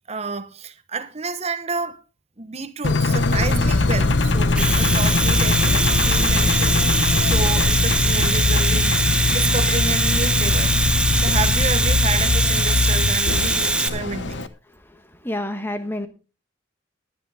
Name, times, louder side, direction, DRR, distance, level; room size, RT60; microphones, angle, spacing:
voice 1, 0.1-2.0 2.4-8.9 9.3-10.8 11.1-14.5, right 4 dB, 35° right, 1.0 m, -30 dB
Engine, 2.8-14.5, left 3 dB, 70° left, 1.0 m, -21 dB
Domestic sounds home sounds, 4.4-13.9, right 2 dB, 5° right, 1.0 m, -22 dB
voice 2, 14.8-16.1, left 1 dB, 10° left, 1.3 m, -29 dB
17.0 x 11.0 x 3.5 m
head